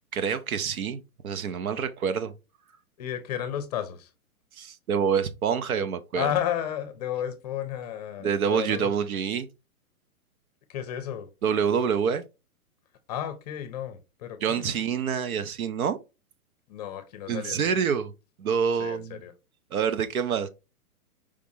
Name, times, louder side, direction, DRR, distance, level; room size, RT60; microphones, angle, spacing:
voice 1, 0.1-2.3 4.6-6.3 8.2-9.5 11.4-12.2 14.4-16.0 17.3-18.1 18.4-19.2 19.7-20.5, right 7 dB, 70° right, 1.0 m, -27 dB
voice 2, 3.0-4.1 6.1-8.9 10.7-11.3 13.1-14.7 16.7-17.6 18.8-19.3, left 10 dB, 30° left, 0.7 m, -32 dB
5.0 x 3.5 x 2.8 m
hypercardioid pair, 155°, 44 cm